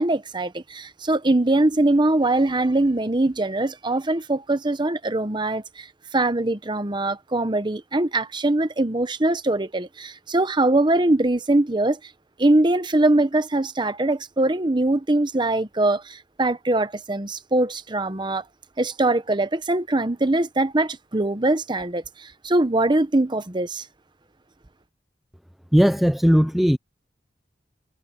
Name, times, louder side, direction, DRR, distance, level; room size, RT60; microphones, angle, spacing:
voice 1, 0.0-5.9 6.1-12.0 12.4-18.4 18.8-23.8, right 2 dB, 25° right, 1.0 m, -22 dB
voice 2, 25.7-26.8, equal, ahead, 0.5 m, -17 dB
head